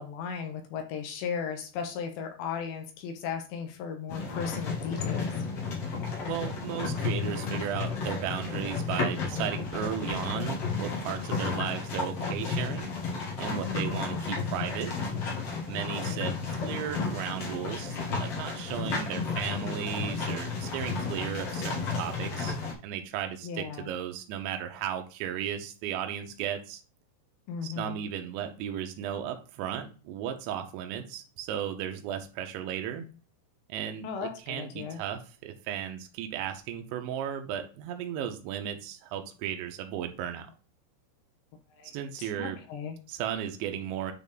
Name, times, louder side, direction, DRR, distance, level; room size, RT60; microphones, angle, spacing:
voice 1, 0.0-5.3 13.7-14.1 15.8-16.2 23.4-23.9 27.5-28.0 34.0-35.0 41.7-41.9 42.2-43.0, left 6 dB, 75° left, 4 dB, 3.3 m, -36 dB
sound 1, 4.1-22.7, left 4 dB, 50° left, 1.9 m, -33 dB
voice 2, 6.3-12.9 13.4-15.0 15.7-22.6 22.8-26.8 27.6-33.1 33.7-40.5 41.9-42.6 43.1-44.1, right 9 dB, 85° right, 5 dB, 3.2 m, -35 dB
9.3 x 4.1 x 3.5 m, 0.35 s
omnidirectional pair, 5.2 m